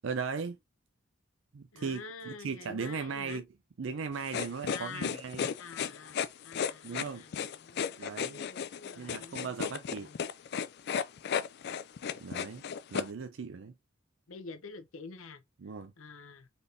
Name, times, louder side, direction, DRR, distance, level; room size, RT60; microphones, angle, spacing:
voice 1, 0.0-0.6 1.5-3.5 3.8-5.5 6.8-7.2 8.0-8.4 9.0-10.1 12.2-12.6 12.9-13.7 15.6-15.9, right 5 dB, 65° right, 0.5 m, -37 dB
voice 2, 1.7-3.4 4.7-6.2 6.4-10.2 14.3-15.4 16.0-16.5, left 4 dB, 90° left, 0.8 m, -47 dB
sound 1, 4.3-13.1, left 7 dB, 55° left, 0.3 m, -34 dB
4.1 x 3.4 x 2.6 m
head